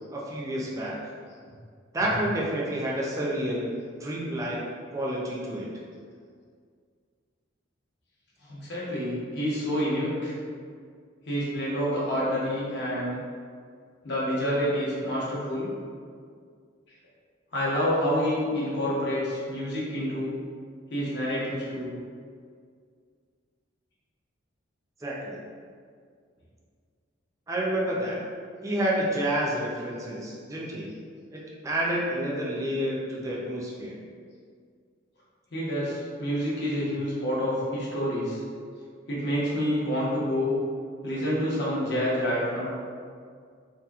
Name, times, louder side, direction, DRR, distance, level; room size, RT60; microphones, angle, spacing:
voice 1, 0.1-0.9 1.9-3.7 4.0-4.6 4.9-5.7 25.0-25.4 27.5-28.2 28.6-30.9 31.3-34.0, right 1 dB, 15° right, -4 dB, 0.4 m, -29 dB
voice 2, 8.4-10.3 11.3-13.2 14.0-15.7 17.5-20.3 20.9-21.9 35.5-38.4 39.1-40.5 41.0-42.7, equal, 55° left, -7 dB, 0.8 m, -28 dB
2.8 x 2.5 x 2.3 m, 2.1 s
head